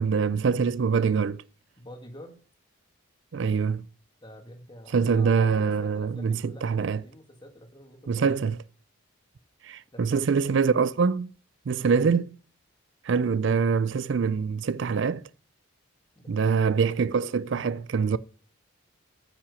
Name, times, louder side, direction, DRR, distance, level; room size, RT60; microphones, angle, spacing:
voice 1, 0.0-1.4 3.3-3.8 4.9-7.0 8.1-8.6 9.6-11.3 11.7-12.4 13.0-15.2 16.3-18.2, right 5 dB, 55° right, 0.4 m, -24 dB
voice 2, 1.8-2.4 4.2-8.5 9.9-10.5 11.8-11.9 16.2-16.6, equal, 20° left, 1.8 m, -47 dB
9.6 x 5.9 x 6.8 m
head